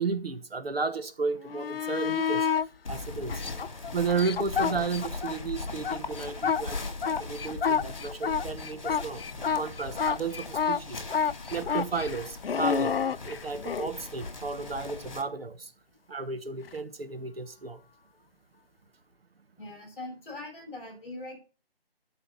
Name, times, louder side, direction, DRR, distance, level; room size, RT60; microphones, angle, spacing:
voice 1, 0.0-2.5 2.9-3.4 3.9-11.0 11.5-15.7 16.1-17.8, right 4 dB, 70° right, 1.3 m, -33 dB
sound 1, 1.4-2.7 3.3-5.4 5.7-13.9 16.6-16.8, left 6 dB, 70° left, 0.5 m, -29 dB
sound 2, 2.8-15.2, left 3 dB, 50° left, 2.1 m, -40 dB
voice 2, 19.6-21.4, left 2 dB, 15° left, 5.8 m, -41 dB
12.5 x 5.1 x 5.6 m
figure-of-eight pair, 175°, 31 cm